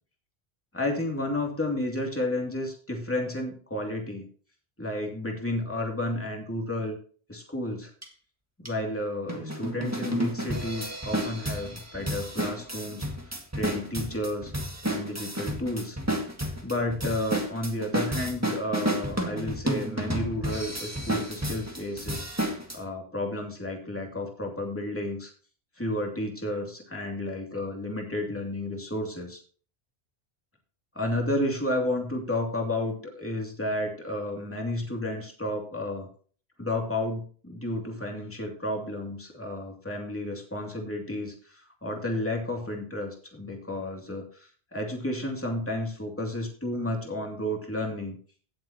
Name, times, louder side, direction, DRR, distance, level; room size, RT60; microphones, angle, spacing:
voice 1, 0.7-4.3 4.8-7.0 7.3-7.9 8.6-14.5 14.9-16.0 16.6-22.3 22.7-25.3 25.8-29.4 30.9-36.1 36.6-48.2, left 1 dB, 10° left, 1 dB, 2.6 m, -32 dB
sound 1, 8.0-8.1 8.7-8.8 9.3-22.8, equal, 15° right, 1.9 m, -31 dB
17.0 x 7.7 x 2.9 m, 0.41 s
omnidirectional pair, 1.1 m